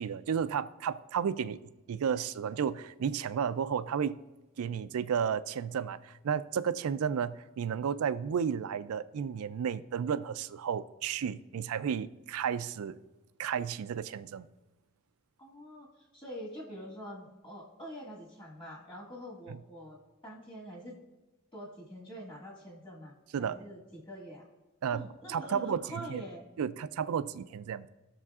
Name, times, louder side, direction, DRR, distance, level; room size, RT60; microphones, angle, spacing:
voice 1, 0.0-1.6 1.9-4.2 4.6-13.0 13.4-14.5 19.5-19.6 23.3-23.6 24.8-26.2 26.6-27.9, right 7 dB, 80° right, 0.4 m, -33 dB
voice 2, 15.4-15.9 16.1-20.9 21.5-24.5 24.9-26.4, equal, 25° left, 1.7 m, -45 dB
16.5 x 6.8 x 2.4 m
head